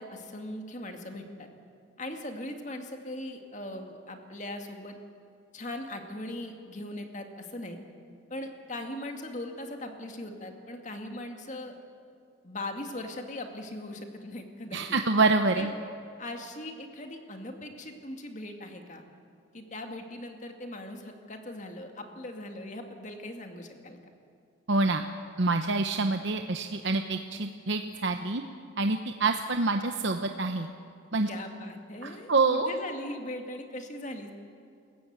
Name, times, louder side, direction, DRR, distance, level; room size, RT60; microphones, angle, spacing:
voice 1, 0.0-1.5 2.0-5.0 5.5-7.8 8.3-11.7 12.4-15.0 15.6-15.7 16.2-19.0 19.5-24.0 31.3-34.3, left 1 dB, 35° left, 4 dB, 2.1 m, -39 dB
voice 2, 14.7-15.7 24.7-25.0 25.4-28.4 28.8-30.7 31.1-31.3 32.0-32.7, right 3 dB, 60° right, 6 dB, 0.9 m, -26 dB
28.0 x 15.0 x 8.8 m, 2.5 s
head